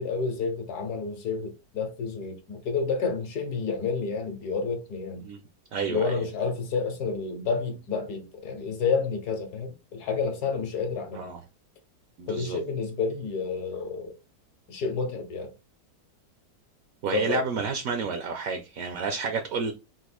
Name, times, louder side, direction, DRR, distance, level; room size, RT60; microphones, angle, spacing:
voice 1, 0.0-5.3 5.9-11.2 12.3-14.1 14.7-15.5 17.1-17.5, left 5 dB, 65° left, 1.3 m, -30 dB
voice 2, 5.7-6.2 11.1-11.4 12.2-12.6 17.0-19.7, right 5 dB, 65° right, 0.9 m, -30 dB
4.0 x 2.5 x 4.2 m
omnidirectional pair, 1.9 m